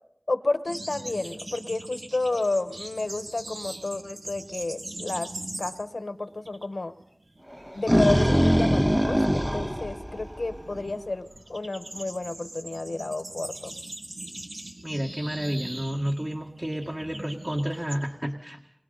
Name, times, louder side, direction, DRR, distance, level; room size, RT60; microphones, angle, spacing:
voice 1, 0.3-5.3 5.6-6.9 7.7-13.8, left 2 dB, 80° left, 9 dB, 1.3 m, -31 dB
sound 1, 0.7-6.0 6.3-6.7 7.0-18.0, right 1 dB, 80° right, 2.3 m, -41 dB
sound 2, 7.5-10.8, equal, 5° right, 0.7 m, -22 dB
voice 2, 14.8-18.6, equal, 25° right, 1 dB, 1.8 m, -30 dB
28.0 x 22.5 x 4.1 m, 0.75 s
wide cardioid pair, 50°, 0 cm